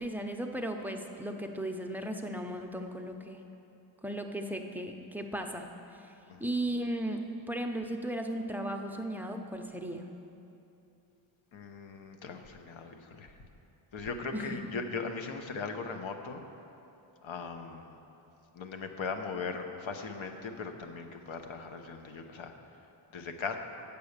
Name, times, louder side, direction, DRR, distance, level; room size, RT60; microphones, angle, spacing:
voice 1, 0.0-3.4 4.0-5.7 6.0-6.1 6.4-10.0 14.3-14.6, right 1 dB, 5° right, 3 dB, 0.5 m, -36 dB
voice 2, 11.5-13.4 13.9-16.4 17.2-18.0 18.5-22.5 23.1-23.6, left 4 dB, 70° left, 6 dB, 0.9 m, -39 dB
8.2 x 7.0 x 6.6 m, 2.8 s
wide cardioid pair, 105°, 49 cm